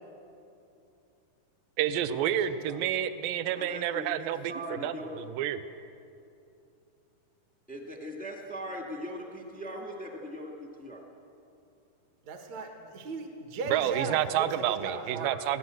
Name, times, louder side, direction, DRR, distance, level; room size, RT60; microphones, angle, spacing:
voice 1, 1.8-5.6 13.7-15.6, right 11 dB, 75° right, 12 dB, 2.3 m, -29 dB
voice 2, 3.6-5.2 7.7-11.0, equal, 5° left, 0 dB, 0.6 m, -40 dB
voice 3, 12.2-15.4, right 3 dB, 55° right, 4 dB, 2.4 m, -37 dB
23.0 x 17.5 x 7.7 m, 2.7 s
omnidirectional pair, 4.6 m